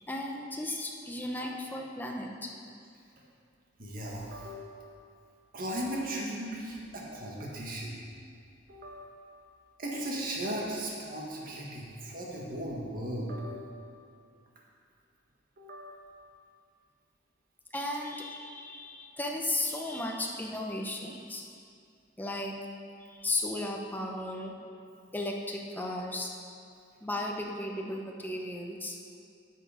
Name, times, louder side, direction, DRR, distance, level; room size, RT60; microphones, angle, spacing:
voice 1, 0.1-2.5 17.7-21.4 22.2-22.5 23.0-24.5 25.1-26.3 27.0-29.0, left 1 dB, 10° left, 0 dB, 0.9 m, -35 dB
voice 2, 3.8-4.8 5.5-8.0 8.7-9.0 9.8-13.7 15.6-15.9, right 1 dB, 50° right, -3 dB, 1.8 m, -37 dB
10.5 x 6.6 x 5.0 m, 2.4 s
head